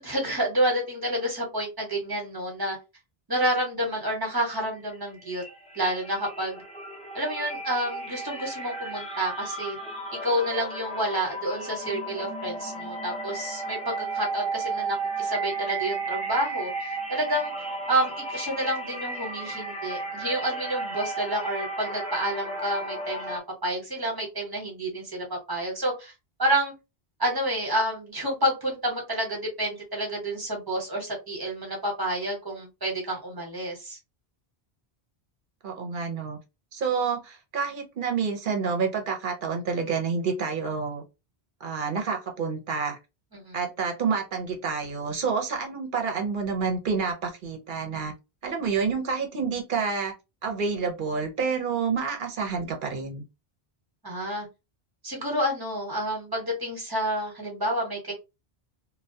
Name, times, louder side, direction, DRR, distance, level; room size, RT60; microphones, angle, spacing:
voice 1, 0.0-2.8 3.3-5.4 5.7-6.6 7.1-9.8 10.1-17.5 17.9-26.1 26.4-26.7 27.2-34.0 43.3-43.7 54.0-54.5 55.0-58.1, right 1 dB, 25° right, -1 dB, 0.9 m, -29 dB
sound 1, 4.7-5.0 5.3-23.4, right 2 dB, 10° left, 0.4 m, -34 dB
voice 2, 35.6-36.4 36.7-41.0 41.6-43.0 43.5-48.1 48.4-50.1 50.4-53.2, right 5 dB, 60° right, 3 dB, 0.7 m, -28 dB
2.2 x 2.2 x 2.6 m, 0.26 s
omnidirectional pair, 1.1 m